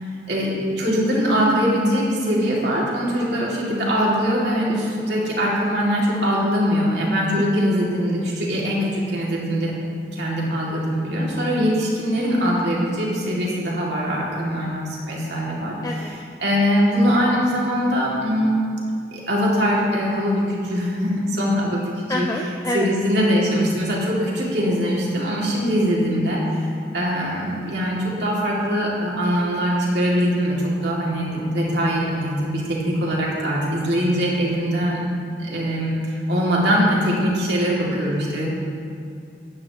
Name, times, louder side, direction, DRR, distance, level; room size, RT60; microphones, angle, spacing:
voice 1, 0.0-9.7 10.1-15.8 16.4-22.3 22.7-26.7 26.9-35.0 35.4-38.5, equal, 75° right, -4 dB, 2.2 m, -22 dB
voice 2, 15.8-16.1 22.1-22.9, left 1 dB, 20° left, 0 dB, 0.4 m, -26 dB
13.0 x 9.7 x 2.9 m, 2.4 s
head